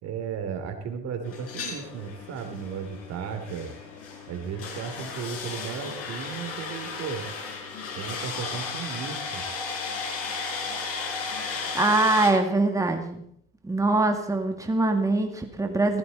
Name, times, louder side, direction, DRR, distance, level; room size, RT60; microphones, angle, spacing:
voice 1, 0.0-3.7 4.3-7.3 7.9-9.4, right 7 dB, 60° right, 7 dB, 3.2 m, -35 dB
sound 1, 1.2-12.3, left 4 dB, 50° left, 5.1 m, -35 dB
voice 2, 11.7-13.2 13.6-16.0, right 2 dB, 10° right, 4 dB, 2.3 m, -23 dB
16.0 x 15.5 x 4.2 m, 0.66 s
hypercardioid pair, 75°, 29 cm